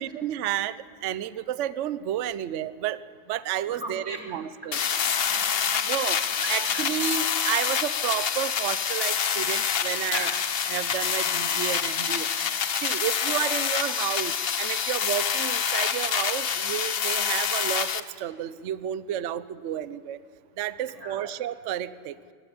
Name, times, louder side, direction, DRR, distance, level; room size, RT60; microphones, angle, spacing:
voice 1, 0.0-3.0 3.3-4.8 5.9-6.2 6.5-10.3 10.7-12.3 12.8-20.2 20.6-22.2, right 11 dB, 90° right, 15 dB, 0.6 m, -31 dB
voice 2, 3.7-6.9 10.0-10.5 20.8-21.3, right 1 dB, 10° right, 0 dB, 3.4 m, -40 dB
sound 1, 4.7-18.0, left 7 dB, 80° left, 0.5 m, -27 dB
21.5 x 17.5 x 9.8 m, 2.3 s
omnidirectional pair, 2.2 m